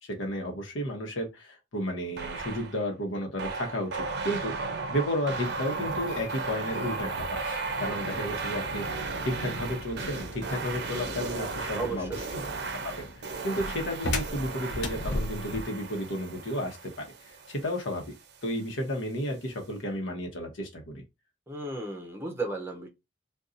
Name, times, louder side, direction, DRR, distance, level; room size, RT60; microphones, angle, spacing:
voice 1, 0.0-4.5 4.9-12.2 12.8-17.1 17.5-18.1 18.4-21.0, equal, 90° left, 1.0 m, -33 dB
sound 1, 2.2-2.8 3.4-18.1, right 4 dB, 60° right, 0.5 m, -35 dB
sound 2, 5.8-15.8, left 1 dB, 60° left, 0.7 m, -38 dB
voice 2, 11.7-12.2 21.5-22.9, right 2 dB, 15° right, 0.6 m, -34 dB
2.6 x 2.3 x 3.7 m
head